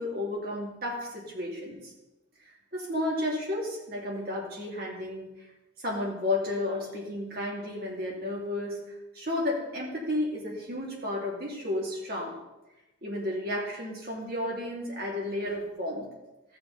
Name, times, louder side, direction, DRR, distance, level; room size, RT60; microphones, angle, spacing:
voice 1, 0.0-1.8 2.7-5.3 5.8-8.8 9.1-12.4 13.0-16.1, left 1 dB, 50° right, -3 dB, 2.8 m, -32 dB
14.0 x 6.9 x 4.3 m, 1.0 s
head